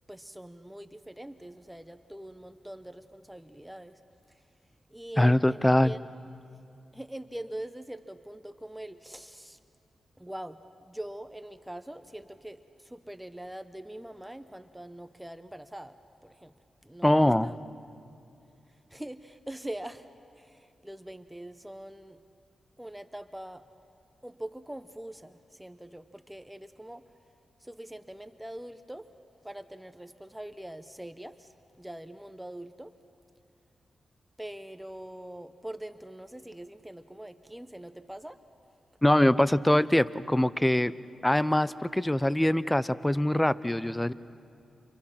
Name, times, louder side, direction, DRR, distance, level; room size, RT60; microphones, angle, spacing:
voice 1, 0.1-4.0 4.9-6.0 6.9-9.6 10.2-16.0 16.2-16.5 16.8-17.6 18.9-20.1 20.4-22.2 22.8-23.6 24.2-27.0 27.6-29.1 29.4-31.5 31.8-32.9 34.4-38.4, right 1 dB, 10° right, 10 dB, 1.0 m, -43 dB
voice 2, 5.2-5.9 17.0-17.5 39.0-40.9 41.2-44.1, left 1 dB, 10° left, 17 dB, 0.7 m, -23 dB
29.0 x 28.0 x 5.9 m, 2.6 s
cardioid pair, 50°, 0 cm